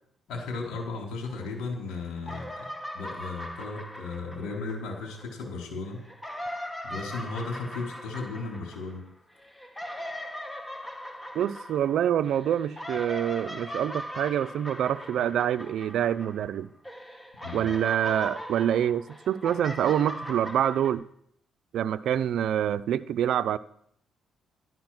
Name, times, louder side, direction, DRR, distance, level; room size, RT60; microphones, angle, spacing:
voice 1, 0.3-2.6 2.9-6.0 6.8-9.0 17.4-17.7, left 3 dB, 85° left, 4.4 m, -35 dB
sound 1, 1.2-1.9 2.2-5.4 6.0-16.6 16.8-20.9, equal, 10° left, 2.0 m, -40 dB
voice 2, 11.3-16.7 17.5-21.0 21.7-23.6, right 10 dB, 75° right, 0.6 m, -26 dB
13.0 x 11.0 x 6.0 m
cardioid pair, 90°, 0 cm